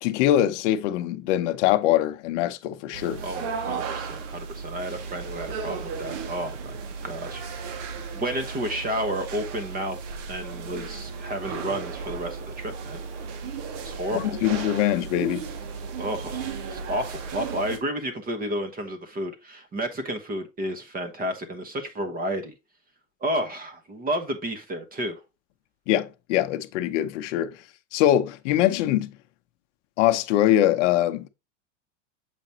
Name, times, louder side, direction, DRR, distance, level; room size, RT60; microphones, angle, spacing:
voice 1, 0.0-3.2 14.1-15.4 25.9-27.5 27.9-29.1 30.0-31.3, left 12 dB, 60° left, 0.8 m, -23 dB
sound 1, 2.9-17.8, right 5 dB, 60° right, 1.7 m, -35 dB
voice 2, 3.2-6.8 7.0-7.8 8.1-10.0 10.3-13.0 13.8-14.3 16.0-22.5 23.2-25.2, right 1 dB, 20° right, 1.1 m, -31 dB
7.1 x 5.0 x 2.8 m
supercardioid pair, 125°, 41 cm